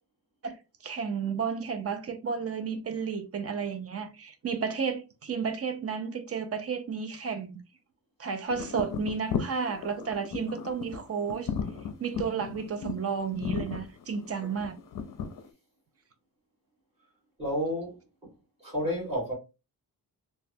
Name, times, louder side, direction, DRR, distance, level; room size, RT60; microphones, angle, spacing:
voice 1, 0.8-7.6 8.2-11.5 12.0-14.7, right 6 dB, 35° right, 0.4 m, -32 dB
sound 1, 8.5-15.5, left 7 dB, 50° left, 0.5 m, -35 dB
voice 2, 17.4-18.0 18.6-19.3, equal, 15° right, 1.7 m, -30 dB
3.1 x 2.2 x 2.6 m
wide cardioid pair, 135°, 43 cm